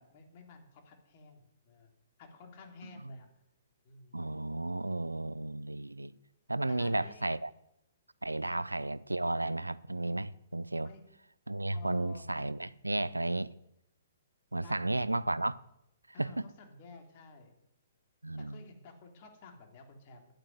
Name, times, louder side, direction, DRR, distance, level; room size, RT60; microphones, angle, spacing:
voice 1, 0.0-1.9 2.2-3.3 3.8-4.3 6.7-7.3 8.4-8.6 10.8-11.0 11.7-12.3 14.6-15.1 16.1-17.5 18.4-20.3, left 4 dB, 40° left, 3.1 m, -52 dB
voice 2, 4.1-6.1 6.5-7.5 8.2-10.9 11.5-13.5 14.5-15.6 16.2-16.3 18.2-18.6, right 2 dB, 90° right, 0.6 m, -33 dB
11.0 x 8.9 x 9.4 m
figure-of-eight pair, 120°, 0 cm